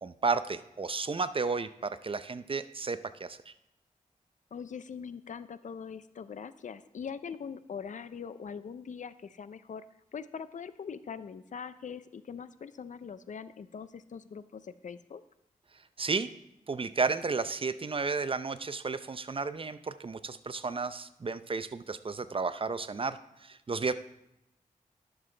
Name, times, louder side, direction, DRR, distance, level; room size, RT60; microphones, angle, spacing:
voice 1, 0.0-3.5 16.0-16.3 16.7-23.9, right 4 dB, 40° right, 13 dB, 0.5 m, -33 dB
voice 2, 4.5-9.8 10.1-15.2, left 6 dB, 60° left, 14 dB, 0.5 m, -42 dB
11.0 x 6.8 x 3.3 m, 0.86 s
cardioid pair, 45°, 15 cm